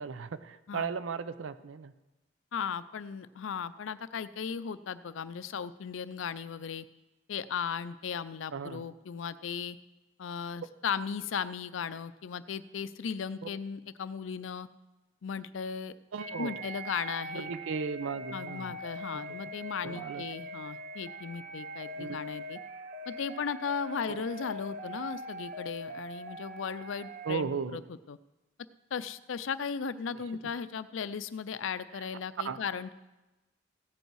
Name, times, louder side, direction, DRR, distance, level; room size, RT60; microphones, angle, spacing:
voice 1, 0.0-1.9 8.5-8.9 13.4-13.5 16.1-16.6 17.3-18.8 19.1-19.2 19.8-20.2 22.0-22.2 24.1-24.2 27.2-27.8 32.0-32.1 32.4-32.6, right 5 dB, 80° right, 14 dB, 0.5 m, -36 dB
voice 2, 2.5-6.9 7.3-9.8 10.2-14.7 15.2-15.9 16.4-17.5 18.3-22.6 23.1-27.8 28.1-28.2 28.9-32.9, left 6 dB, 80° left, 15 dB, 0.4 m, -36 dB
sound 1, 16.2-27.3, right 1 dB, 40° right, 0.7 m, -42 dB
15.0 x 8.0 x 4.6 m, 1.0 s
head